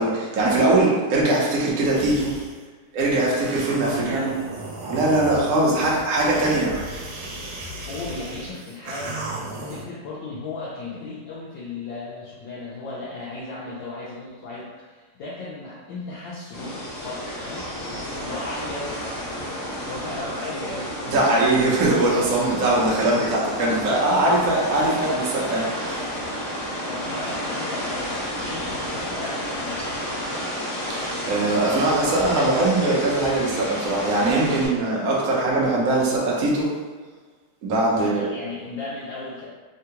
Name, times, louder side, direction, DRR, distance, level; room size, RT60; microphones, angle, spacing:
voice 1, 0.0-2.3 2.9-4.3 4.9-6.7 21.0-26.0 30.9-36.7 37.6-38.2, right 2 dB, 65° right, -5 dB, 0.8 m, -21 dB
sound 1, 1.9-2.6 3.1-9.8, right 1 dB, 85° right, 1.5 m, -35 dB
voice 2, 3.9-4.4 5.6-5.9 7.8-9.2 9.5-17.7 18.2-21.1 26.9-30.1 37.9-39.5, left 3 dB, 75° left, -7 dB, 1.2 m, -36 dB
sound 2, 16.5-34.7, equal, 45° left, 1.3 m, -31 dB
3.6 x 2.2 x 2.8 m, 1.4 s
omnidirectional pair, 2.4 m